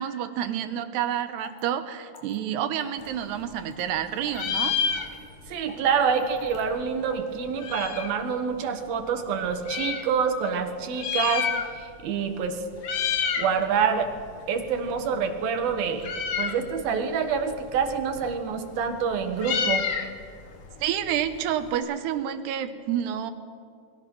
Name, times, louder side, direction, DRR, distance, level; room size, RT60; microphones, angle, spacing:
voice 1, 0.0-4.7 20.8-23.3, right 10 dB, 85° right, 10 dB, 3.3 m, -29 dB
sound 1, 0.9-1.0 1.4-1.7 2.1-2.4 2.8-3.1 3.5-3.8 4.3-4.5 4.9-5.2 5.7-5.9 6.4-6.6 7.1-7.3 7.8-8.0, left 5 dB, 65° left, 4.6 m, -46 dB
Meow, 3.0-4.0 4.3-5.5 5.8-5.9 6.1-8.2 8.9-10.1 10.8-12.0 12.3-12.5 12.8-13.5 13.9-21.8, left 7 dB, 80° left, 1.2 m, -31 dB
voice 2, 5.5-12.6 13.4-14.1 14.5-16.1 16.4-19.9, right 6 dB, 70° right, 6 dB, 3.3 m, -27 dB
29.0 x 21.5 x 6.3 m, 2.3 s
omnidirectional pair, 4.6 m